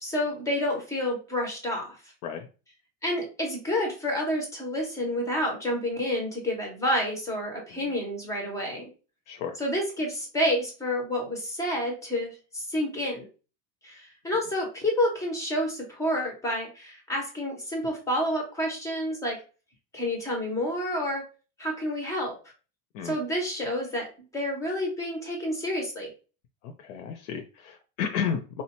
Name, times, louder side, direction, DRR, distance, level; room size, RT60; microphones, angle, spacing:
voice 1, 0.0-2.1 3.0-8.9 9.6-13.2 13.8-19.4 19.9-21.2 21.6-22.3 23.0-24.1 24.3-26.1, left 1 dB, 10° left, 0 dB, 0.3 m, -29 dB
voice 2, 9.3-9.6 22.9-23.2 26.6-28.6, left 7 dB, 75° left, 5 dB, 0.6 m, -33 dB
3.7 x 2.1 x 2.8 m, 0.34 s
cardioid pair, 160°, 44 cm